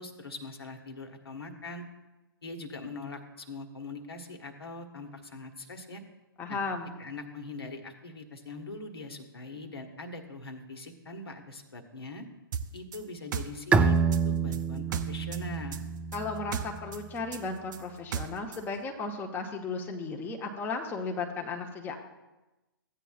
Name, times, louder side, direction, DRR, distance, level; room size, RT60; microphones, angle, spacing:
voice 1, 0.0-1.8 2.4-6.0 6.5-6.6 7.0-12.2 12.7-15.8, left 2 dB, 80° left, 4 dB, 1.4 m, -42 dB
voice 2, 6.4-6.9 16.1-22.0, left 3 dB, 15° left, 1 dB, 0.9 m, -35 dB
sound 1, 12.5-15.4 15.7-18.6, right 7 dB, 50° right, 0.6 m, -36 dB
Bowed string instrument, 13.7-17.2, right 5 dB, 10° right, 0.3 m, -28 dB
15.0 x 9.0 x 2.4 m, 1.0 s
figure-of-eight pair, 125°, 13 cm